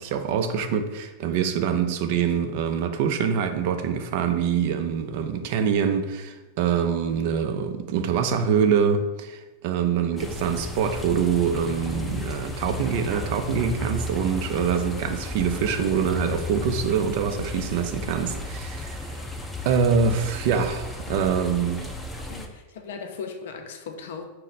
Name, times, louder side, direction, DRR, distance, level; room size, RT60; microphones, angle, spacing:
voice 1, 0.0-19.2 19.6-21.9, right 7 dB, 60° right, 0.4 m, -25 dB
sound 1, 10.2-22.5, left 2 dB, 10° left, 0.5 m, -34 dB
voice 2, 22.3-24.3, left 5 dB, 75° left, 0.5 m, -37 dB
3.9 x 2.1 x 4.1 m
hypercardioid pair, 105°, 0 cm